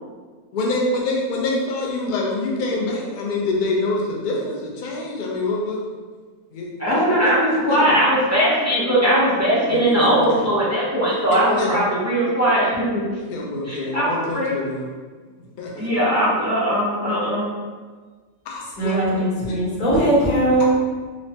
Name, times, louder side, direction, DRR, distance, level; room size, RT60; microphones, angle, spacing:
voice 1, 0.5-6.0 6.5-8.0 9.7-10.5 11.6-11.8 13.3-14.9 15.3-15.9 18.5-19.0, left 2 dB, 80° left, -2 dB, 0.4 m, -26 dB
voice 2, 6.8-13.1 13.6-14.5 15.8-17.5 18.8-19.1, equal, 20° right, -10 dB, 0.4 m, -20 dB
voice 3, 18.8-20.7, right 1 dB, 40° left, -8 dB, 1.0 m, -19 dB
3.0 x 2.1 x 2.7 m, 1.4 s
omnidirectional pair, 1.5 m